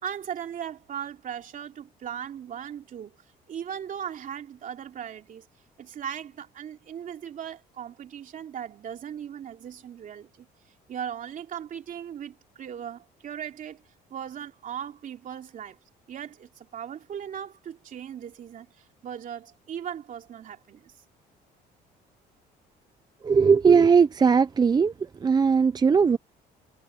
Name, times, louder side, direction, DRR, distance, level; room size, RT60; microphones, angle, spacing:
voice 1, 0.0-3.1 3.5-5.5 5.8-10.5 10.9-13.8 14.1-15.8 16.1-20.9, right 9 dB, 50° right, 2.9 m, -38 dB
voice 2, 23.2-24.9 25.2-26.2, right 6 dB, 25° right, 0.5 m, -19 dB
cardioid pair, 110°, 17 cm